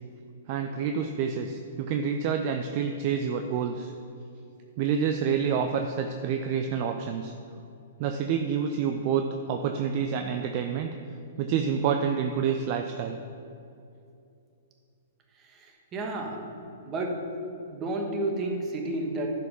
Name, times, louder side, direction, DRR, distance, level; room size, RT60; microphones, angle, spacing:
voice 1, 0.5-3.9 4.8-7.3 8.0-10.9 11.4-13.2, right 7 dB, 45° right, 5 dB, 0.5 m, -28 dB
voice 2, 15.4-16.5 16.8-17.4 17.7-19.3, right 2 dB, 25° right, 2 dB, 1.5 m, -31 dB
10.5 x 5.2 x 5.5 m, 2.6 s
hypercardioid pair, 120°, 0 cm